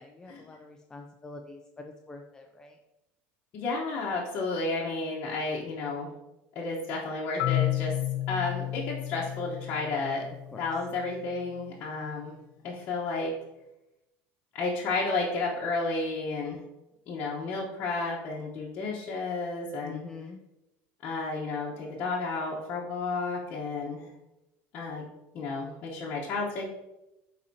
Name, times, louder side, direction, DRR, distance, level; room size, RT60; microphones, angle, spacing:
voice 1, 0.0-2.8 10.5-10.6 19.8-20.4, left 3 dB, 15° left, 3 dB, 0.4 m, -45 dB
voice 2, 3.5-6.1 6.5-7.9 8.3-10.2 10.6-12.3 12.6-13.3 14.5-16.6 17.1-20.0 21.0-24.1 24.7-25.0 25.3-26.6, left 3 dB, 40° left, -5 dB, 1.1 m, -32 dB
Marimba xylophone, 7.4-11.3, left 16 dB, 70° left, 0.5 m, -32 dB
9.8 x 4.1 x 2.8 m, 0.94 s
cardioid pair, 150°, 5 cm